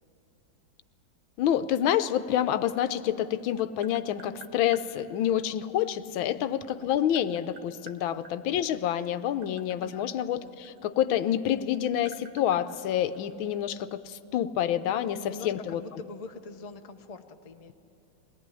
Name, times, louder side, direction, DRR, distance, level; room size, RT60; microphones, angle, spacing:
voice 1, 1.4-15.8, left 10 dB, 80° left, 12 dB, 1.5 m, -28 dB
Tap, 3.2-4.9 6.2-8.4 9.1-11.3 11.6-13.6, right 5 dB, 65° right, 1.8 m, -51 dB
voice 2, 6.2-6.6 7.9-8.2 9.8-10.0 15.2-17.7, left 4 dB, 50° left, 5 dB, 0.4 m, -44 dB
21.5 x 18.0 x 9.9 m, 2.7 s
omnidirectional pair, 2.2 m